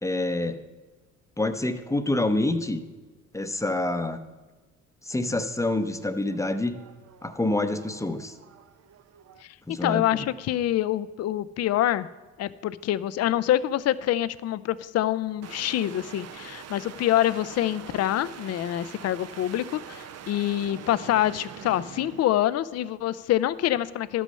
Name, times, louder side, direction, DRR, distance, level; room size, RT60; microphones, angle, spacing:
voice 1, 0.0-0.6 1.4-2.8 3.3-4.2 5.0-6.8 7.2-8.3 9.7-10.3, left 2 dB, 10° left, 9 dB, 0.7 m, -27 dB
sound 1, 5.8-9.4 15.4-22.3, right 8 dB, 55° right, 0.7 m, -45 dB
voice 2, 9.7-12.1 12.4-24.2, left 12 dB, 55° left, 16 dB, 0.5 m, -26 dB
12.0 x 6.2 x 5.5 m, 1.3 s
cardioid pair, 90°, 30 cm